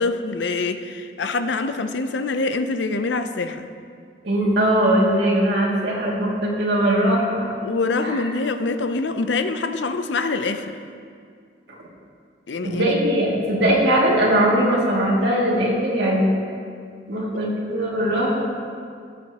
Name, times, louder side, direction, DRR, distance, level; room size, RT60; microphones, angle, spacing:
voice 1, 0.0-3.7 7.6-10.8 12.5-12.9 17.3-17.5, left 3 dB, 85° left, 9 dB, 0.6 m, -25 dB
voice 2, 4.2-7.5 8.0-8.2 12.6-16.3 17.1-18.5, right 1 dB, 75° right, -4 dB, 2.4 m, -20 dB
18.0 x 7.5 x 2.9 m, 2.3 s
head